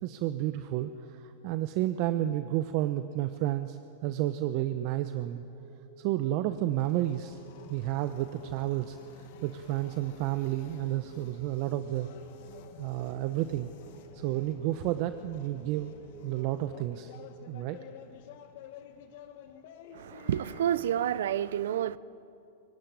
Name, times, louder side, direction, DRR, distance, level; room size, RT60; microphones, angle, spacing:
voice 1, 0.0-5.4 6.0-7.4 7.7-12.1 12.8-13.7 14.1-15.9 16.2-17.1 17.5-17.8, right 14 dB, 50° right, 0.9 m, -31 dB
sound 1, 5.5-17.5, right 4 dB, 20° right, 5.1 m, -53 dB
sound 2, 6.8-21.3, left 8 dB, 60° left, 2.1 m, -51 dB
voice 2, 19.9-22.0, right 10 dB, 80° right, 0.7 m, -29 dB
23.0 x 17.5 x 9.9 m
hypercardioid pair, 125°, 0 cm